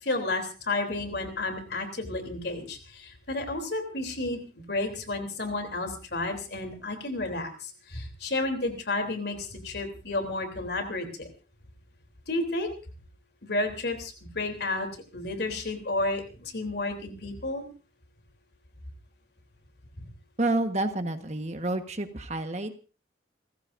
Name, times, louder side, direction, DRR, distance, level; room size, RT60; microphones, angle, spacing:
voice 1, 0.0-11.3 12.3-12.7 13.4-17.6, left 2 dB, 60° left, 6 dB, 3.4 m, -31 dB
voice 2, 20.4-22.8, right 2 dB, 35° right, 7 dB, 1.4 m, -29 dB
29.5 x 15.0 x 2.7 m, 0.34 s
head